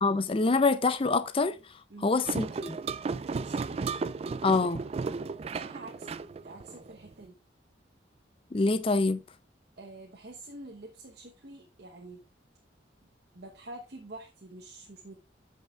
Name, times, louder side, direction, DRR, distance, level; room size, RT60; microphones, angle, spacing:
voice 1, 0.0-1.6 2.0-2.8 4.4-4.8 8.5-9.2, left 3 dB, 30° left, 0.5 m, -25 dB
voice 2, 1.9-2.2 3.4-3.8 5.5-6.2 6.4-7.4 9.8-12.2 13.3-15.2, right 2 dB, 60° right, 1.0 m, -46 dB
sound 1, 2.3-7.1, right 4 dB, 35° right, 0.3 m, -34 dB
14.5 x 5.6 x 2.4 m
head